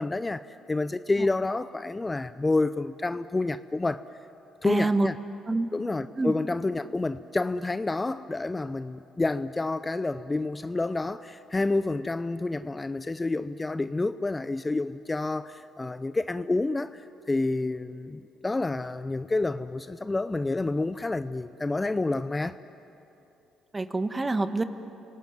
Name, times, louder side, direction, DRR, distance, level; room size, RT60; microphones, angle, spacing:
voice 1, 0.0-4.0 4.6-5.2 5.7-17.0 17.3-22.6, left 2 dB, 20° left, 13 dB, 0.6 m, -29 dB
voice 2, 4.6-5.1 5.5-5.7 6.2-6.3 23.7-24.6, right 2 dB, 25° right, 9 dB, 1.5 m, -26 dB
28.0 x 18.0 x 9.4 m, 2.9 s
supercardioid pair, 60°, 0 cm